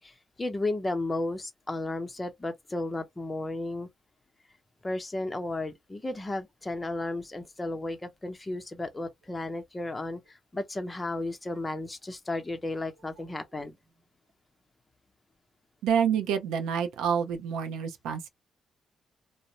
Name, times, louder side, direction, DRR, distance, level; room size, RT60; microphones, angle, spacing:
voice 1, 0.0-3.9 4.8-13.7, left 2 dB, 20° left, 0.7 m, -34 dB
voice 2, 15.8-18.3, right 7 dB, 90° right, 0.5 m, -28 dB
2.5 x 2.0 x 2.9 m
cardioid pair, 90°, 0 cm